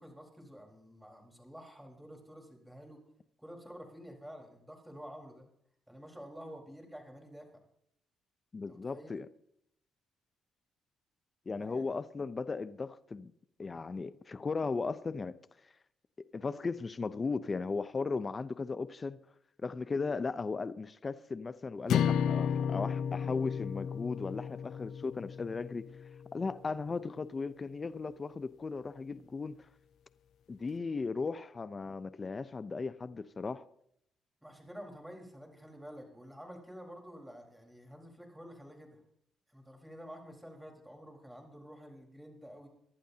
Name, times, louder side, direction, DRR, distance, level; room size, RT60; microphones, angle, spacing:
voice 1, 0.0-3.0 3.4-5.4 5.9-7.5 8.7-9.1 11.6-12.0 34.4-39.0 39.5-42.7, equal, 5° right, 4.3 m, -50 dB
voice 2, 8.5-9.3 11.5-13.3 13.6-15.4 16.3-19.2 19.6-25.9 26.3-29.7 30.5-33.6, left 4 dB, 30° left, 0.6 m, -36 dB
sound 1, 21.9-26.2, left 8 dB, 75° left, 0.5 m, -33 dB
23.5 x 11.5 x 2.8 m
cardioid pair, 90°, 0 cm